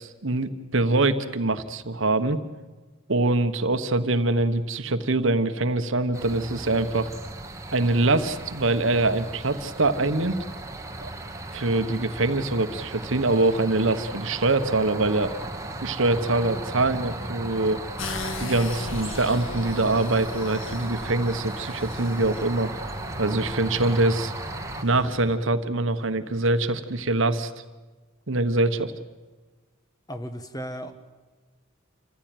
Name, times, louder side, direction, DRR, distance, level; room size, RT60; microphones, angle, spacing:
voice 1, 0.0-2.4 3.1-7.1 7.7-10.4 11.0-11.1 11.5-15.3 15.8-17.8 18.4-22.7 23.2-24.3 24.8-27.5 28.3-28.9, right 2 dB, 65° right, 10 dB, 1.2 m, -24 dB
sound 1, 6.1-24.8, right 2 dB, 15° right, 1.4 m, -36 dB
sound 2, 18.0-25.4, left 3 dB, 65° left, 1.7 m, -38 dB
voice 2, 30.1-30.9, equal, 20° left, 9 dB, 1.3 m, -35 dB
28.0 x 15.0 x 9.3 m, 1.3 s
head